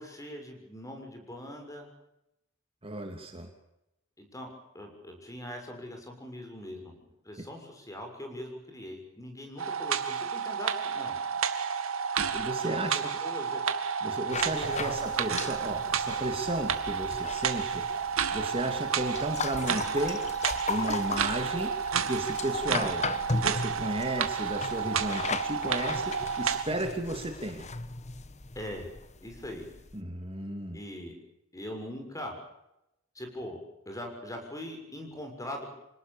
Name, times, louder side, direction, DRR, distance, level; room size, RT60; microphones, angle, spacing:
voice 1, 0.0-1.9 4.2-6.9 7.2-11.2 12.6-13.6 14.5-15.4 28.5-28.9 29.2-29.6 30.7-31.1 31.5-32.3 33.1-33.6 33.8-35.7, left 1 dB, 15° left, 4 dB, 6.7 m, -41 dB
voice 2, 2.8-3.5 12.2-13.1 14.0-18.0 18.3-20.2 20.7-21.7 22.1-27.7 29.9-30.8, right 1 dB, 30° right, 4 dB, 2.8 m, -34 dB
sound 1, 9.6-26.6, right 6 dB, 85° right, 2.2 m, -31 dB
sound 2, 14.3-30.0, left 4 dB, 35° left, 1.2 m, -38 dB
27.5 x 19.0 x 7.1 m, 0.85 s
head